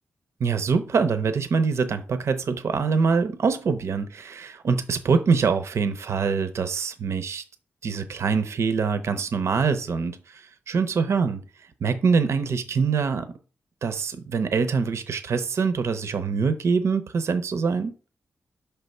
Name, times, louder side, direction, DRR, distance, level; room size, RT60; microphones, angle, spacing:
voice 1, 0.4-7.4 7.8-11.4 11.8-13.3 13.8-17.9, right 5 dB, 75° right, 0.7 m, -24 dB
5.8 x 3.4 x 5.4 m
wide cardioid pair, 85°, 5 cm